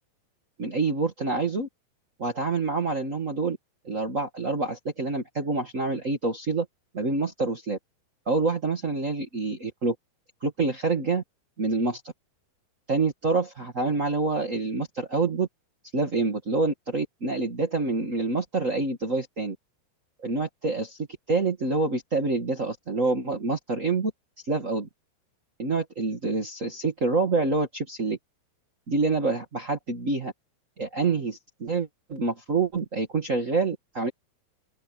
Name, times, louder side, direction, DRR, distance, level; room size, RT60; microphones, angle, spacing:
voice 1, 0.6-1.7 2.2-3.6 3.8-6.6 6.9-7.8 8.2-9.9 10.4-11.2 11.6-12.0 12.9-15.5 15.9-19.5 20.2-21.0 21.3-24.1 24.5-24.9 25.6-28.2 28.9-30.3 30.8-34.1, right 3 dB, 60° right, 0.8 m, -27 dB
open air
omnidirectional pair, 4.7 m